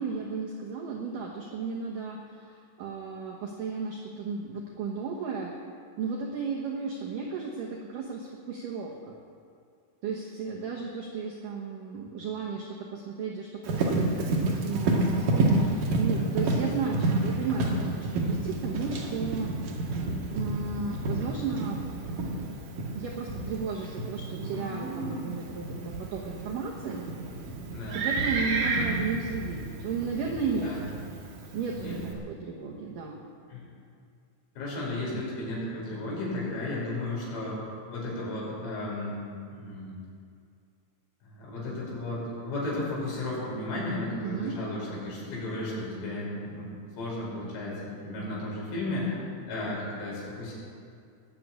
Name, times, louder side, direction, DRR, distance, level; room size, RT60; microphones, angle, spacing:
voice 1, 0.0-5.5 6.0-9.0 10.0-19.5 20.3-21.8 22.2-22.5 23.0-27.1 27.9-30.7 31.5-33.2 35.1-35.3 44.2-44.6, right 5 dB, 75° right, -1 dB, 2.0 m, -34 dB
Livestock farm animals working animals, 13.6-32.1, right 2 dB, 55° right, 2.8 m, -30 dB
voice 2, 27.7-28.0 30.6-30.8 31.8-32.0 33.5-33.7 34.6-37.6 37.9-39.3 39.5-39.9 41.2-46.7 47.0-49.2 49.5-50.5, left 2 dB, 85° left, -6 dB, 8.0 m, -34 dB
20.0 x 7.8 x 8.9 m, 2.3 s
omnidirectional pair, 5.7 m